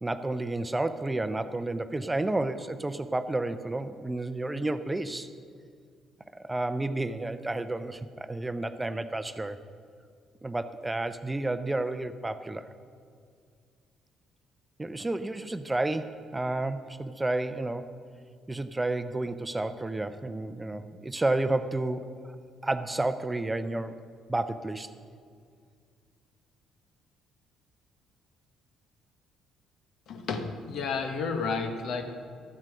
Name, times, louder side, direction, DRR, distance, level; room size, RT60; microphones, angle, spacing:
voice 1, 0.0-5.3 6.3-9.6 10.4-12.7 14.8-17.9 18.5-22.3 22.6-24.0 24.3-24.9, right 2 dB, 15° right, 11 dB, 0.6 m, -31 dB
voice 2, 30.1-32.0, left 5 dB, 60° left, 6 dB, 1.1 m, -31 dB
12.5 x 7.5 x 6.1 m, 2.2 s
hypercardioid pair, 50°, 0 cm